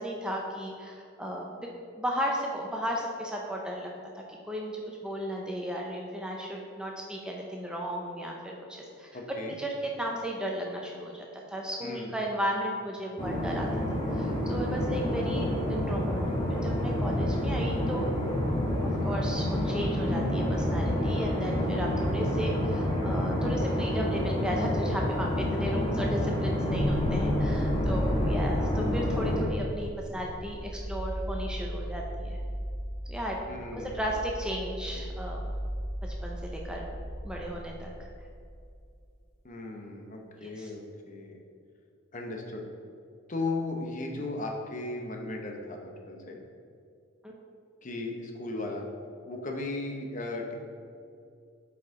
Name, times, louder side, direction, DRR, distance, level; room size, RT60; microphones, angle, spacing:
voice 1, 0.0-1.7 2.0-9.2 9.6-13.7 14.1-16.2 16.5-18.1 19.0-32.4 33.1-33.4 33.7-35.4 36.0-36.9 37.2-37.9 40.4-40.7 47.2-47.3, equal, 5° right, -1 dB, 0.5 m, -35 dB
voice 2, 9.1-9.6 11.8-12.1 33.5-33.9 34.9-35.1 39.4-41.4 42.1-42.6 43.3-46.4 47.8-48.8 49.3-50.5, left 2 dB, 35° left, 1 dB, 0.8 m, -36 dB
sound 1, 13.2-29.4, left 1 dB, 20° left, 1.2 m, -28 dB
sound 2, 26.7-38.8, equal, 75° left, 1.4 m, -35 dB
8.0 x 4.7 x 3.7 m, 2.4 s
head